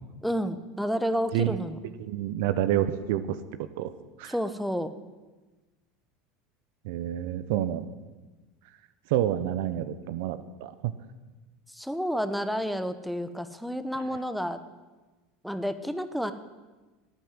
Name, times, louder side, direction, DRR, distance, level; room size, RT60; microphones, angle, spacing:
voice 1, 0.2-1.8 4.3-4.9 11.7-14.6 15.4-16.3, equal, ahead, 11 dB, 1.1 m, -30 dB
voice 2, 2.0-3.2 3.8-3.9 4.2-4.3 6.8-7.9 9.1-10.7 13.9-14.0, right 12 dB, 70° right, 12 dB, 0.8 m, -28 dB
12.0 x 9.3 x 9.6 m, 1.2 s
hypercardioid pair, 85°, 0 cm